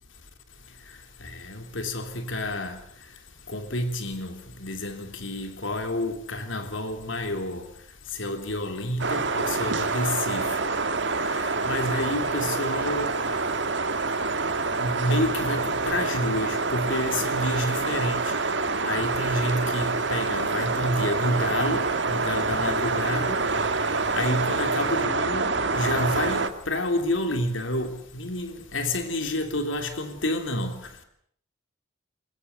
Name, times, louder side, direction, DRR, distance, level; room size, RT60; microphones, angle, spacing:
voice 1, 1.2-2.8 3.5-7.7 8.1-10.6 11.2-13.3 14.8-18.3 18.8-30.9, left 1 dB, 70° left, 3.2 m, -29 dB
sound 1, 9.0-26.5, right 3 dB, 60° right, 1.8 m, -26 dB
22.5 x 21.0 x 8.2 m
head